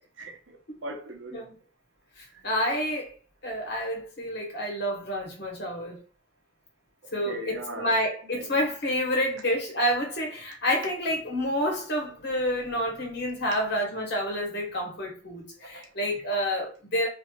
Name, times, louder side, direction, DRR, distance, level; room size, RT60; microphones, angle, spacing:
voice 1, 0.2-1.5 2.3-2.5 7.0-8.6 15.6-15.8, right 1 dB, 75° right, 0.9 m, -41 dB
voice 2, 2.2-3.1 3.4-6.0 7.1-17.1, equal, 55° left, 1.3 m, -29 dB
3.0 x 2.8 x 2.3 m
head